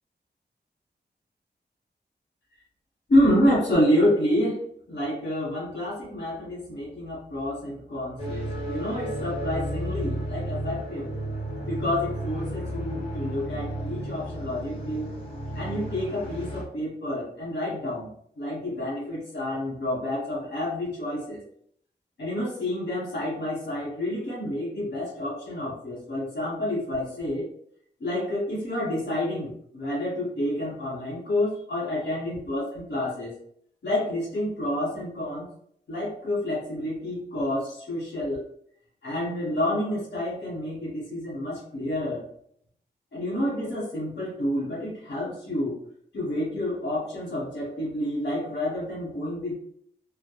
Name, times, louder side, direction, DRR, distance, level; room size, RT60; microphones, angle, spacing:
voice 1, 3.1-11.1 11.6-15.2 15.5-18.1 18.4-21.4 22.2-27.5 28.0-33.4 33.8-35.5 35.9-38.4 39.0-42.2 43.1-45.8 46.1-49.5, left 1 dB, 75° left, -7 dB, 1.0 m, -28 dB
sound 1, 8.2-16.6, right 1 dB, 30° left, 1.1 m, -33 dB
2.1 x 2.1 x 2.8 m, 0.66 s
wide cardioid pair, 85°, 18 cm